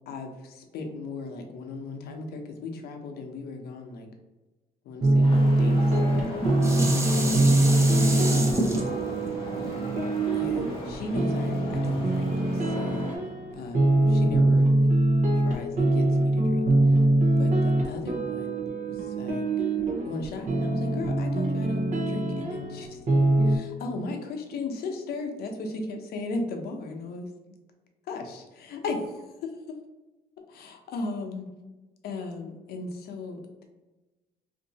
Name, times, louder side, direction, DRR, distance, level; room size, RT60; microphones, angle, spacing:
voice 1, 0.1-4.1 4.8-5.8 6.9-8.5 9.6-10.1 10.3-13.1 13.5-14.9 15.3-17.0 17.4-19.5 20.0-27.3 28.1-29.5 30.5-31.5 32.0-33.6, left 3 dB, 70° left, 4 dB, 0.7 m, -37 dB
sound 1, 5.0-23.6, right 2 dB, 45° right, 0.8 m, -23 dB
sound 2, 5.2-13.2, left 1 dB, 30° left, 1.0 m, -38 dB
Dishes pots and pans, 6.0-11.3 11.8-11.9, right 2 dB, 15° right, 0.6 m, -30 dB
2.7 x 2.6 x 3.9 m, 1.1 s
cardioid pair, 110°, 17 cm